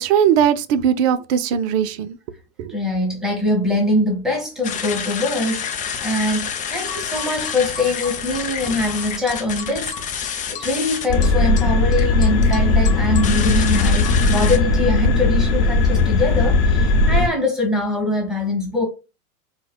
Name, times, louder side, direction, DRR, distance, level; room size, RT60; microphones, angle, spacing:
voice 1, 0.0-2.2 2.6-2.8, right 9 dB, 50° right, 0.5 m, -19 dB
voice 2, 2.7-18.8, left 2 dB, ahead, 1.5 m, -23 dB
sound 1, 4.6-14.6, left 7 dB, 20° left, 0.5 m, -28 dB
sound 2, 11.1-17.3, left 2 dB, 55° left, 0.8 m, -17 dB
4.8 x 2.2 x 2.2 m
hypercardioid pair, 95°, 43 cm